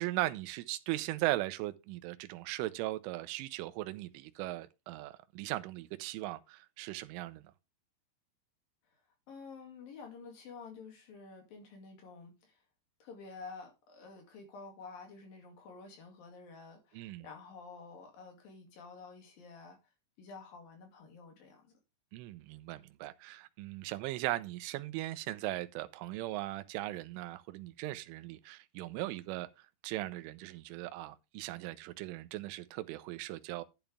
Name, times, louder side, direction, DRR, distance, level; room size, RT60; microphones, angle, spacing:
voice 1, 0.0-7.4 16.9-17.3 22.1-33.6, right 17 dB, 85° right, 3.2 m, -38 dB
voice 2, 9.3-12.6 13.0-19.8 20.2-21.8, left 4 dB, 55° left, 3.8 m, -50 dB
11.5 x 9.0 x 3.5 m
omnidirectional pair, 5.6 m